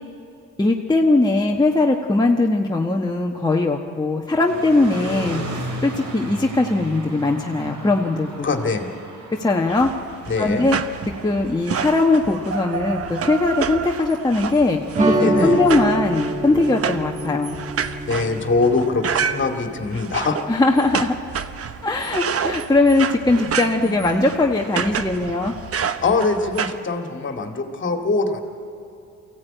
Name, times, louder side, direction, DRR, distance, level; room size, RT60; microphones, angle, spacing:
voice 1, 0.6-5.4 5.8-8.5 9.4-9.9 10.4-10.8 11.2-14.8 15.1-17.6 20.5-21.2 21.8-25.5, left 2 dB, 15° left, 0 dB, 1.2 m, -20 dB
sound 1, 4.5-18.5, right 1 dB, 75° right, 3.4 m, -37 dB
voice 2, 8.4-8.9 10.3-10.7 15.2-15.6 18.1-20.4 26.0-28.4, left 3 dB, 40° left, 4 dB, 2.3 m, -22 dB
sound 2, 9.7-26.8, right 7 dB, 50° right, 0.9 m, -29 dB
sound 3, 14.9-19.8, right 2 dB, 25° right, 1.7 m, -25 dB
23.0 x 15.5 x 9.1 m, 2.6 s
cardioid pair, 90°, 30 cm